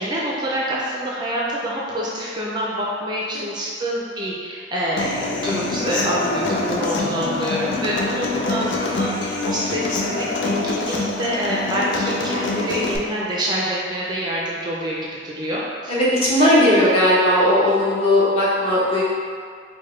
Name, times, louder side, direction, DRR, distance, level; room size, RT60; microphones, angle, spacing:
voice 1, 0.0-15.0 15.2-15.9 16.7-16.8, equal, 25° right, -5 dB, 0.4 m, -26 dB
Human voice / Acoustic guitar, 5.0-13.0, left 3 dB, 85° left, 0.4 m, -25 dB
voice 2, 15.9-19.0, left 1 dB, 35° left, -8 dB, 0.9 m, -17 dB
4.6 x 2.1 x 3.1 m, 2.1 s
head